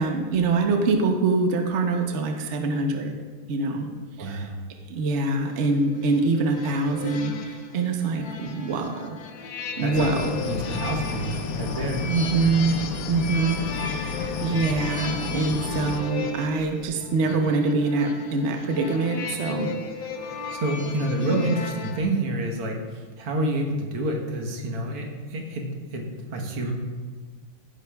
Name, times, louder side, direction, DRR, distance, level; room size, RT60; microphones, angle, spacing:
voice 1, 0.0-3.1 3.5-3.9 4.2-4.5 4.9-9.2 9.8-10.4 12.0-12.8 13.1-19.7 21.2-21.5, right 3 dB, 55° right, 4 dB, 0.8 m, -24 dB
voice 2, 4.2-4.6 9.8-10.1 10.4-12.1 20.5-26.7, right 1 dB, 85° right, 1 dB, 2.2 m, -28 dB
sound 1, 5.4-22.0, left 5 dB, 65° left, 1.5 m, -36 dB
sound 2, 9.9-16.0, left 5 dB, 90° left, 0.7 m, -31 dB
16.0 x 10.0 x 2.3 m, 1.5 s
omnidirectional pair, 2.4 m